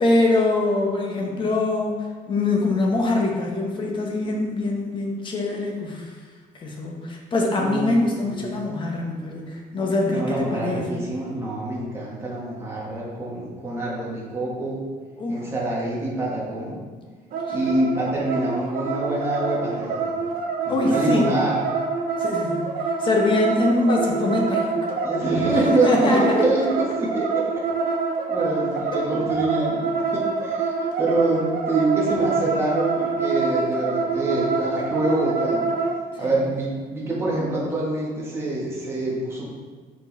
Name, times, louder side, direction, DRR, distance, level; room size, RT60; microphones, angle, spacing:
voice 1, 0.0-2.0 2.3-6.1 6.5-10.9 15.2-15.5 17.5-17.6 20.7-21.3 22.2-24.9 25.6-26.4 36.1-36.3, left 2 dB, 30° left, 0 dB, 1.0 m, -23 dB
voice 2, 7.6-7.9 8.2-8.6 10.1-14.8 15.3-16.8 17.5-20.1 20.6-21.7 25.0-27.4 28.3-30.7 31.0-35.7 36.2-39.5, right 2 dB, 15° right, -5 dB, 1.5 m, -25 dB
sound 1, 17.3-36.0, right 4 dB, 65° right, 0.8 m, -26 dB
5.3 x 4.7 x 4.0 m, 1.5 s
cardioid pair, 160°, 16 cm